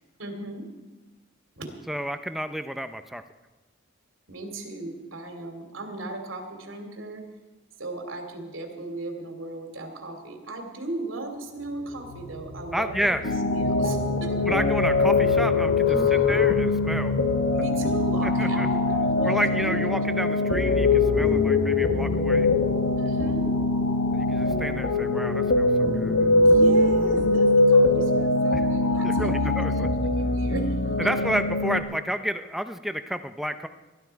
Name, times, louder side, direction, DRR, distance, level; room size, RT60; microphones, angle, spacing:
voice 1, 0.2-0.7 1.6-1.7 4.3-7.3 7.8-14.4 15.9-16.4 17.5-20.0 21.1-21.5 23.0-23.5 26.4-31.1, right 2 dB, 75° right, 3 dB, 2.7 m, -37 dB
voice 2, 1.9-3.2 12.7-13.2 14.5-17.2 18.2-18.7 19.2-22.5 24.1-26.2 28.5-28.6 29.0-29.9 31.0-33.7, equal, ahead, 9 dB, 0.5 m, -30 dB
sound 1, 11.6-26.3, equal, 40° left, 2.3 m, -35 dB
sound 2, 13.2-31.8, left 3 dB, 90° left, 1.4 m, -22 dB
20.0 x 12.0 x 4.6 m, 1.2 s
head